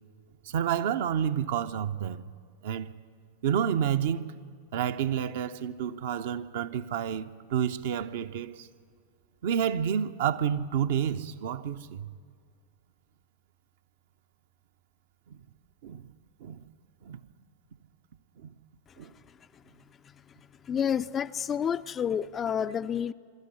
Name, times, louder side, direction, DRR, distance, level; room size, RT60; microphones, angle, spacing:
voice 1, 0.4-2.2 2.6-2.9 3.4-4.3 4.7-8.7 9.4-12.1 15.3-15.4 15.8-16.0 16.4-16.6 17.0-17.2 18.4-18.5 19.0-19.1, right 8 dB, 55° right, 0.8 m, -29 dB
voice 2, 20.6-23.1, left 8 dB, 25° left, 0.4 m, -29 dB
21.5 x 13.5 x 9.7 m
figure-of-eight pair, 90°, 0 cm